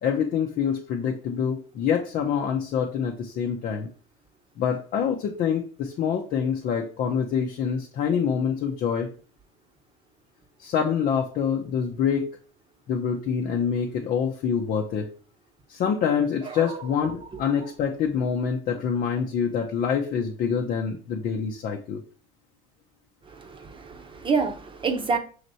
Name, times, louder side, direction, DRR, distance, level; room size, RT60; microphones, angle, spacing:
voice 1, 0.0-3.9 4.6-9.1 10.6-12.3 12.9-15.1 15.7-22.0, left 7 dB, 55° left, 0.7 m, -26 dB
voice 2, 16.4-16.9 17.2-17.4 23.3-25.2, right 4 dB, 30° right, 0.9 m, -28 dB
5.7 x 3.1 x 2.7 m
hypercardioid pair, 80°, 18 cm